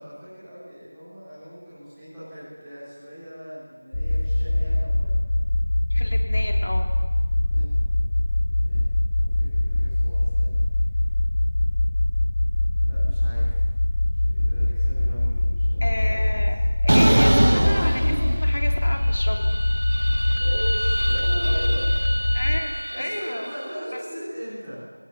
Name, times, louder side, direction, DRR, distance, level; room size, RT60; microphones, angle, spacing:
voice 1, 0.0-5.1 7.3-8.0 8.4-8.9 9.2-10.6 12.8-13.5 14.1-16.4 20.1-22.3 22.9-24.9, equal, 5° right, -16 dB, 4.0 m, -39 dB
sound 1, 3.9-22.6, left 1 dB, 35° left, 1.7 m, -22 dB
voice 2, 5.9-6.9 15.8-16.5 16.8-19.5 22.3-23.5 23.9-24.0, left 1 dB, 50° left, 3 dB, 3.3 m, -32 dB
sound 2, 16.9-18.8 19.2-23.5, right 1 dB, 50° right, 1.0 m, -24 dB
26.5 x 19.0 x 7.3 m, 1.3 s
figure-of-eight pair, 180°, 0 cm